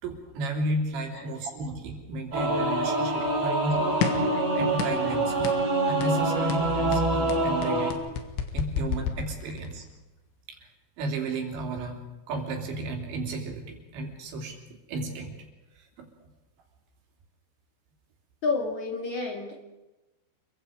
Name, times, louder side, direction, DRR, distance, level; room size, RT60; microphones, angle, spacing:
voice 1, 0.0-3.9 4.6-5.5 5.8-8.0 8.5-9.9 10.5-10.7 11.0-12.0 12.3-14.6 14.9-15.4 15.7-16.1, right 2 dB, 70° right, 2 dB, 5.2 m, -33 dB
Singing / Musical instrument, 2.3-7.9, right 2 dB, 35° right, 3.9 m, -25 dB
sound 1, 4.0-4.3 4.8-5.1 5.4-5.7 6.0-6.2 6.5-9.8, left 8 dB, 85° left, 4.0 m, -31 dB
voice 2, 18.4-19.6, left 3 dB, 50° left, 2 dB, 2.9 m, -30 dB
28.5 x 23.0 x 5.0 m, 1.0 s
omnidirectional pair, 5.3 m